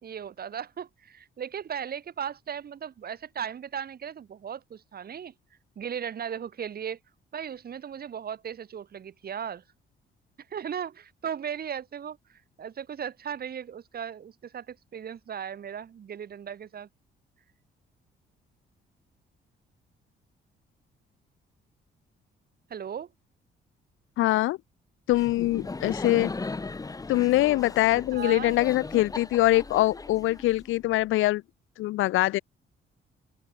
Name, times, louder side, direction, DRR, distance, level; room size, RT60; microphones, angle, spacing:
voice 1, 0.0-5.3 5.7-7.0 7.3-9.6 10.5-16.9 22.7-23.1 28.1-28.6, right 8 dB, 50° right, 1.7 m, -37 dB
voice 2, 24.2-24.6 25.1-26.3 27.1-31.4 31.8-32.4, left 17 dB, 85° left, 0.8 m, -23 dB
Laughter, 25.1-30.9, left 3 dB, 15° left, 0.9 m, -37 dB
open air
cardioid pair, 90°, 20 cm